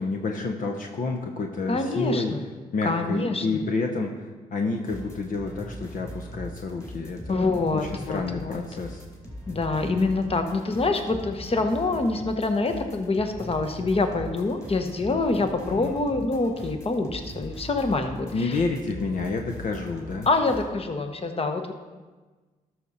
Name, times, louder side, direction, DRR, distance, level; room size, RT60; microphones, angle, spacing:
voice 1, 0.0-2.4 2.7-9.0 15.7-16.0 18.3-20.3, left 3 dB, 60° left, 3 dB, 0.8 m, -29 dB
voice 2, 1.7-2.4 2.8-3.4 7.3-8.6 9.5-18.6 20.3-21.7, left 3 dB, 40° left, 6 dB, 1.1 m, -26 dB
sound 1, 4.9-20.7, equal, 20° left, 2.5 m, -41 dB
12.5 x 6.0 x 4.1 m, 1.3 s
cardioid pair, 60°, 15 cm